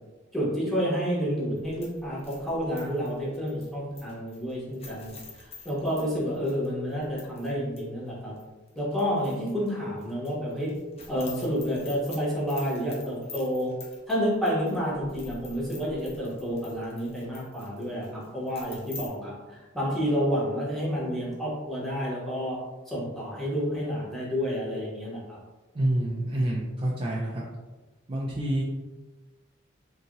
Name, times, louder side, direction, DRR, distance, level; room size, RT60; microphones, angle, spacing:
voice 1, 0.3-8.4 8.8-10.7 11.1-13.7 14.1-22.6 22.9-25.4, equal, ahead, -7 dB, 0.9 m, -29 dB
sound 1, 1.6-7.5 7.8-7.9 8.4-9.7 10.0-19.1, left 3 dB, 35° left, 0.6 m, -47 dB
voice 2, 25.7-27.4 28.1-28.6, right 1 dB, 30° right, -4 dB, 0.4 m, -27 dB
2.8 x 2.7 x 2.5 m, 1.2 s
head